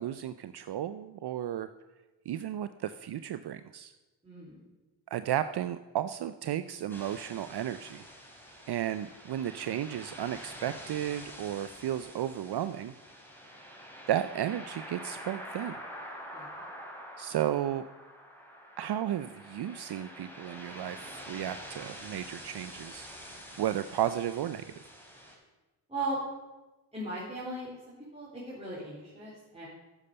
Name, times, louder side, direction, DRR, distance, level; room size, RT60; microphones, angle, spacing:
voice 1, 0.0-1.7 2.3-3.9 5.1-8.0 8.7-12.9 14.1-15.8 17.2-17.8 18.8-23.1 23.6-24.7, right 11 dB, 60° right, 12 dB, 0.5 m, -33 dB
voice 2, 4.2-4.6 16.3-16.6 25.9-26.2 26.9-27.7 28.1-29.7, right 2 dB, 15° right, -8 dB, 4.1 m, -37 dB
sound 1, 6.9-25.3, equal, 5° left, 3.2 m, -47 dB
9.7 x 6.9 x 6.7 m, 1.1 s
cardioid pair, 50°, 46 cm